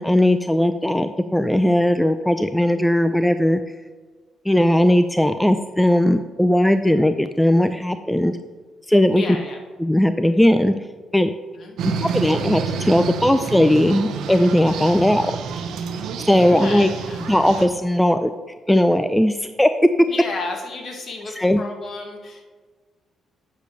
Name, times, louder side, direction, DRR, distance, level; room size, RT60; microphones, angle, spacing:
voice 1, 0.0-3.6 4.5-8.3 8.9-9.2 9.8-10.7 11.1-11.3 11.8-15.4 16.2-16.9 17.3-18.3 18.7-19.7 21.4-21.6, left 1 dB, 5° left, 9 dB, 0.3 m, -18 dB
voice 2, 9.1-9.6 11.5-12.2 16.3-17.2 20.1-22.4, left 3 dB, 50° left, 2 dB, 1.6 m, -33 dB
sound 1, 11.8-17.7, right 6 dB, 80° right, 0.7 m, -28 dB
8.4 x 6.6 x 3.2 m, 1.4 s
cardioid pair, 90°, 0 cm